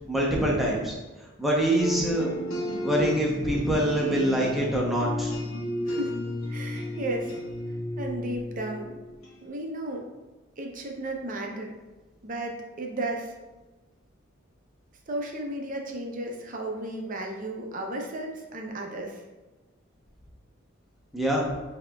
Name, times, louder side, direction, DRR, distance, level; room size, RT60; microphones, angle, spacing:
voice 1, 0.1-0.9 1.4-2.4 2.8-5.3 21.1-21.5, right 1 dB, ahead, -3 dB, 0.7 m, -25 dB
sound 1, 1.8-9.3, left 1 dB, 80° left, 1.1 m, -32 dB
voice 2, 5.9-6.2 6.5-7.4 8.0-9.0 9.4-10.0 10.6-11.7 12.2-13.3 15.1-19.2, right 1 dB, 40° right, 1 dB, 0.6 m, -34 dB
7.2 x 2.8 x 2.3 m, 1.2 s
head